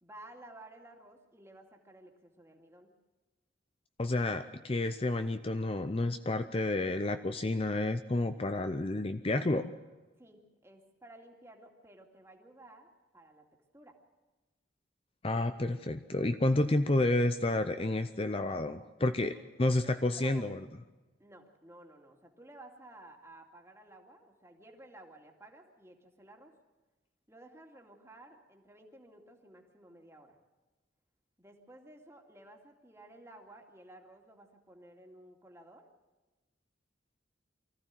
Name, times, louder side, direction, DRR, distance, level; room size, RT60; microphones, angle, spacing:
voice 1, 0.0-2.9 10.2-13.5 13.7-14.0 19.3-20.5 21.2-26.5 27.3-30.4 31.4-35.9, right 1 dB, 15° right, 2 dB, 2.4 m, -55 dB
voice 2, 4.0-9.7 15.2-20.6, left 2 dB, 30° left, 9 dB, 0.6 m, -30 dB
24.0 x 15.0 x 7.6 m, 1.2 s
head